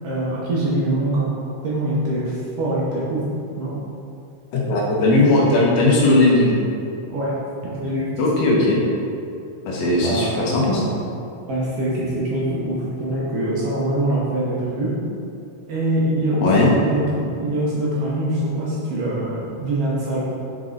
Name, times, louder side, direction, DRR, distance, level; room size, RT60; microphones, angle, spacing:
voice 1, 0.0-1.3 1.6-3.2 3.6-3.7 7.1-7.4 7.8-8.1 10.0-10.4 11.4-14.9 15.7-16.5 16.8-20.2, right 1 dB, 65° right, -6 dB, 1.7 m, -23 dB
voice 2, 4.5-6.6 8.2-8.8 9.7-10.9 16.4-16.8, left 2 dB, 70° left, -3 dB, 2.0 m, -17 dB
5.3 x 4.9 x 3.8 m, 2.6 s
omnidirectional pair, 3.4 m